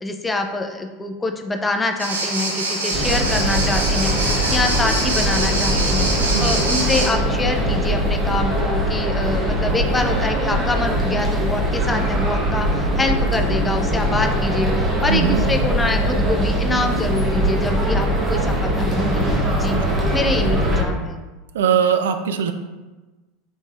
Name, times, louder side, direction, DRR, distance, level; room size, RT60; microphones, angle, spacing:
voice 1, 0.0-19.8 20.1-21.2, left 2 dB, 15° left, 4 dB, 0.5 m, -25 dB
sound 1, 2.0-7.1, right 2 dB, 85° right, 0.8 m, -24 dB
sound 2, 2.9-20.8, equal, 20° right, 1.0 m, -21 dB
voice 2, 15.1-15.4 19.7-20.0 21.5-22.5, right 8 dB, 70° right, 7 dB, 0.3 m, -20 dB
5.0 x 3.8 x 2.5 m, 1.2 s
figure-of-eight pair, 80°, 0 cm